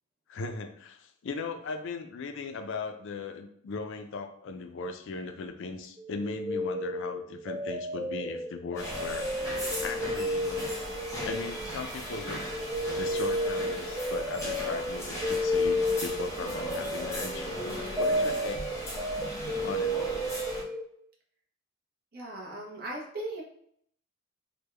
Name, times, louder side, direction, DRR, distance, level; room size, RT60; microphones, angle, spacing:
voice 1, 0.3-10.7 11.2-12.5 12.9-18.7 19.6-20.0, left 4 dB, 65° left, 6 dB, 0.4 m, -38 dB
sound 1, 6.0-12.0 12.2-20.8, left 1 dB, 10° right, 0.3 m, -32 dB
sound 2, 8.7-20.6, equal, 15° left, 0.9 m, -37 dB
voice 2, 22.1-23.4, right 1 dB, 50° right, -2 dB, 0.8 m, -38 dB
3.5 x 2.2 x 3.2 m, 0.68 s
head